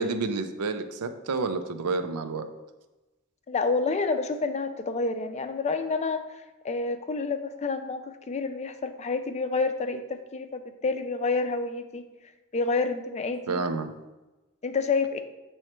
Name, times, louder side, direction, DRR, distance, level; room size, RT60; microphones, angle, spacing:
voice 1, 0.0-2.4 13.5-13.9, right 4 dB, 90° right, 8 dB, 0.5 m, -29 dB
voice 2, 3.5-12.0 12.5-13.6 14.6-15.2, left 4 dB, 30° left, 8 dB, 0.4 m, -29 dB
7.7 x 3.1 x 4.4 m, 1.1 s
head